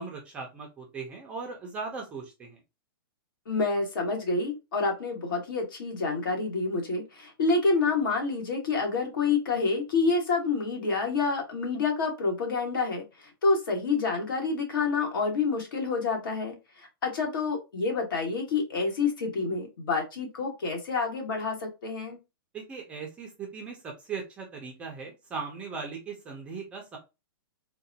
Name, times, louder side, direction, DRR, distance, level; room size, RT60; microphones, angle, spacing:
voice 1, 0.0-2.6 22.5-27.0, right 5 dB, 10° right, 1 dB, 0.4 m, -38 dB
voice 2, 3.5-22.2, left 4 dB, 65° left, 2 dB, 1.4 m, -28 dB
3.8 x 2.1 x 2.6 m, 0.25 s
hypercardioid pair, 175°, 12 cm